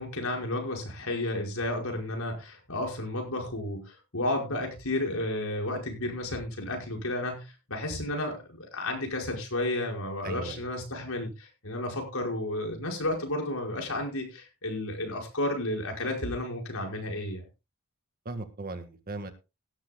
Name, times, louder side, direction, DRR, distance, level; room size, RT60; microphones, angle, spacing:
voice 1, 0.0-17.4, left 1 dB, 75° left, 1 dB, 5.3 m, -32 dB
voice 2, 10.2-10.7 18.2-19.3, right 2 dB, 40° right, 9 dB, 1.6 m, -37 dB
17.5 x 13.0 x 2.3 m, 0.28 s
head